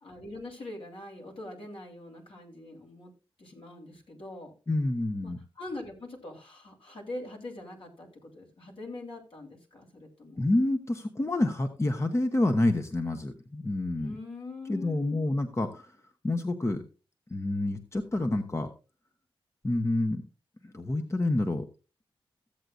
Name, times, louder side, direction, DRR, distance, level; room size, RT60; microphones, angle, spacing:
voice 1, 0.0-3.1 3.4-4.5 5.2-10.4 14.0-15.3, left 2 dB, 65° left, -1 dB, 3.5 m, -43 dB
voice 2, 4.7-5.4 10.4-14.2 14.7-16.0 16.2-16.8 17.3-18.7 19.6-20.2 20.6-21.6, left 2 dB, 30° left, 6 dB, 1.0 m, -28 dB
15.0 x 7.9 x 2.5 m, 0.32 s
cardioid pair, 55°, 10 cm